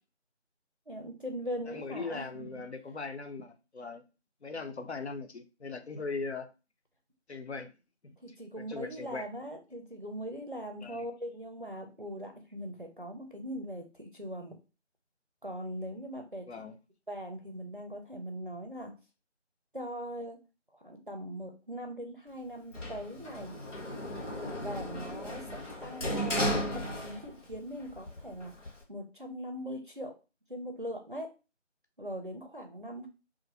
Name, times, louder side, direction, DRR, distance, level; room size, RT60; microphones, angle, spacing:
voice 1, 0.9-2.6 8.2-14.5 15.4-16.6 17.1-18.9 19.7-20.4 20.7-23.6 24.3-30.2 30.5-31.3 32.0-33.1, equal, 45° right, 0.5 m, -41 dB
voice 2, 1.7-4.0 4.4-6.5 7.3-7.7 8.0-8.1 8.6-9.3 10.8-11.1 16.5-16.8, left 4 dB, 65° left, 0.5 m, -39 dB
Sliding door, 22.7-27.6 27.9-28.8, equal, 90° left, 1.1 m, -35 dB
2.5 x 2.4 x 2.8 m
figure-of-eight pair, 175°, 36 cm